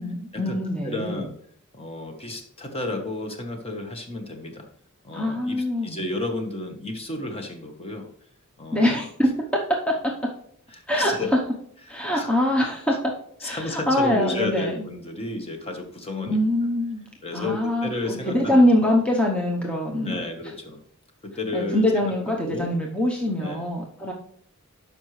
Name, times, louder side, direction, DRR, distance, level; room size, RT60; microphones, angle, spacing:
voice 1, 0.0-1.2 5.1-6.0 8.7-9.6 9.9-10.1 10.9-11.1 11.9-13.0 13.4-14.8 16.2-17.0 17.3-20.2 21.5-24.1, left 1 dB, 5° left, -1 dB, 0.9 m, -23 dB
voice 2, 0.8-1.3 1.7-4.7 5.0-8.1 8.6-9.0 10.7-11.3 12.1-12.3 13.4-16.4 17.2-18.9 20.0-20.8 21.2-22.0 22.4-22.7 23.4-23.6, left 2 dB, 30° left, 4 dB, 1.2 m, -32 dB
12.5 x 5.3 x 3.2 m, 0.66 s
head